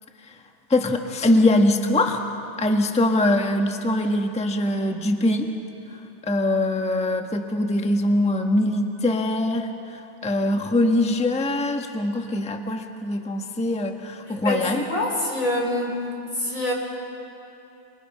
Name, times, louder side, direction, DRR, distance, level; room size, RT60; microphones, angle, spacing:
voice 1, 0.7-2.2 2.6-5.5 6.2-14.8, left 1 dB, 5° left, 4 dB, 0.8 m, -22 dB
voice 2, 14.3-16.0 16.3-16.7, left 1 dB, 35° left, 0 dB, 4.8 m, -25 dB
29.5 x 27.5 x 5.8 m, 2.8 s
omnidirectional pair, 2.3 m